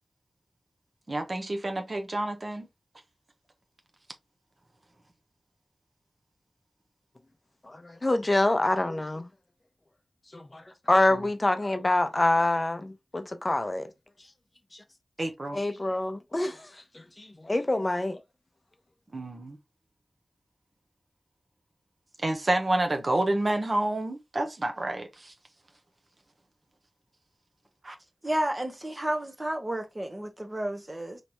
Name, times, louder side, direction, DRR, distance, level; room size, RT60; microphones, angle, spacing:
voice 1, 1.1-2.7 11.1-11.3 15.2-15.6 19.1-19.6 22.2-25.3 27.8-27.9, right 1 dB, 50° right, 1.0 m, -29 dB
voice 2, 7.7-9.3 10.3-10.6 10.9-13.9 15.5-16.7 17.2-18.2, left 2 dB, 35° left, 0.7 m, -26 dB
voice 3, 28.2-31.2, right 1 dB, 25° right, 1.1 m, -31 dB
4.1 x 3.2 x 3.0 m
cardioid pair, 50°, 0 cm